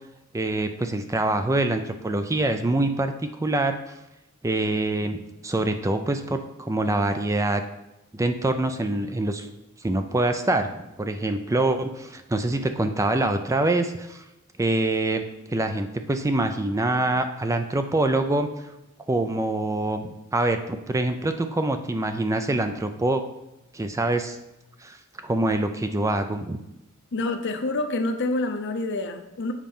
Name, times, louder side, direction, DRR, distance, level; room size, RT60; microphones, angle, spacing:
voice 1, 0.3-3.1 3.4-3.8 4.4-7.6 8.1-9.5 9.8-10.7 11.0-14.2 14.6-15.2 15.5-18.5 19.1-23.2 23.7-24.4 24.8-25.0 25.2-26.6, right 2 dB, 15° right, 7 dB, 0.4 m, -25 dB
voice 2, 27.1-29.5, left 2 dB, 55° left, 7 dB, 0.7 m, -27 dB
7.3 x 4.4 x 5.4 m, 0.94 s
head